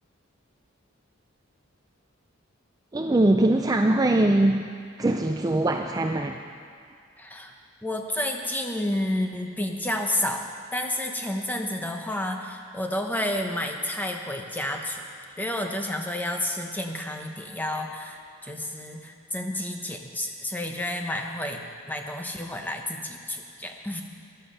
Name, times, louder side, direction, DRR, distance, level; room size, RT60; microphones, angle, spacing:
voice 1, 2.9-4.6 5.0-6.4, right 1 dB, 20° right, 4 dB, 0.4 m, -22 dB
voice 2, 7.2-7.5 7.8-15.0 15.4-24.0, left 1 dB, 10° left, 2 dB, 1.0 m, -30 dB
14.5 x 11.5 x 5.5 m, 2.2 s
head